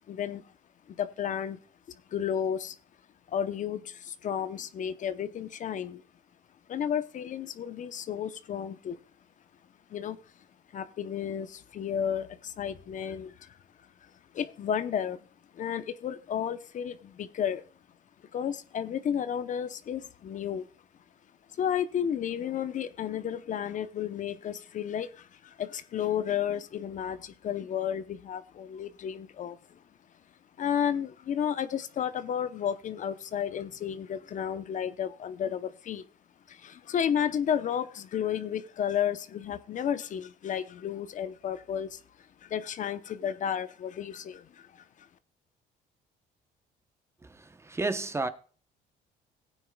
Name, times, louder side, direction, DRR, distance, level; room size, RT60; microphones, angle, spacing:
voice 1, 0.1-0.4 0.9-1.6 1.9-2.8 3.3-6.0 6.7-9.0 9.9-10.2 10.7-13.6 14.0-15.2 15.5-17.6 18.3-20.7 21.6-29.8 30.6-36.0 36.5-42.0 42.4-45.1, left 9 dB, 50° left, 0.8 m, -32 dB
voice 2, 47.2-48.3, right 3 dB, 15° right, 0.8 m, -32 dB
17.0 x 9.2 x 2.3 m
cardioid pair, 110°, 17 cm